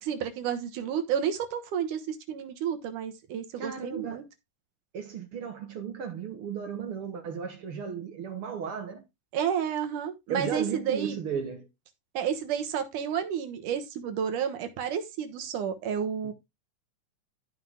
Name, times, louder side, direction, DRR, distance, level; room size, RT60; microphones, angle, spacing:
voice 1, 0.0-4.2 9.3-11.1 12.1-16.3, right 8 dB, 75° right, 2.8 m, -31 dB
voice 2, 3.6-4.2 4.9-9.0 10.3-11.7 16.2-16.3, right 7 dB, 55° right, 1.8 m, -35 dB
13.0 x 5.8 x 3.6 m
omnidirectional pair, 3.7 m